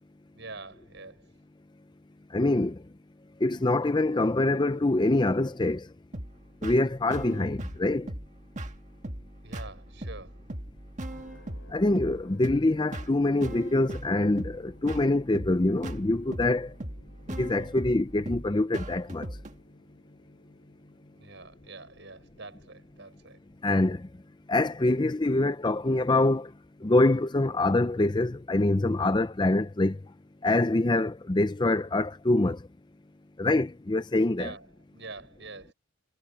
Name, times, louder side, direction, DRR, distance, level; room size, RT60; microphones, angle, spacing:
voice 1, 0.3-1.3 9.4-10.4 21.1-23.4 34.3-34.7 34.9-35.7, right 3 dB, 55° right, 6.4 m, -45 dB
voice 2, 2.3-2.8 3.4-5.9 6.6-8.1 11.7-16.7 17.4-19.3 23.6-24.1 24.5-26.5 26.8-30.0 30.4-32.6 33.4-34.5, left 2 dB, 20° left, 0.5 m, -25 dB
sound 1, 6.1-19.5, right 1 dB, 35° right, 1.8 m, -39 dB
sound 2, 11.1-27.0, left 1 dB, 65° left, 5.0 m, -59 dB
head